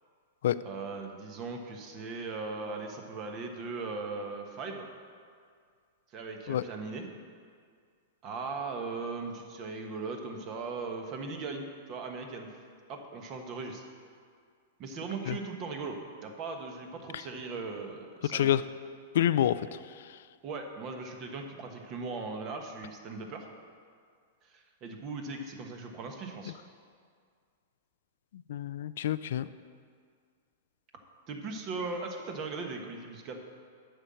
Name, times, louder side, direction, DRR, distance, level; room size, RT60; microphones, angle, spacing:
voice 1, 0.6-4.9 6.1-7.1 8.2-12.6 12.9-13.8 14.8-18.5 20.4-23.5 24.5-26.5 31.3-33.4, right 4 dB, 40° right, 4 dB, 1.3 m, -38 dB
voice 2, 18.3-18.6 19.1-19.7 28.5-29.5, left 11 dB, 70° left, 15 dB, 0.3 m, -27 dB
8.0 x 5.6 x 7.7 m, 2.1 s
hypercardioid pair, 125°, 0 cm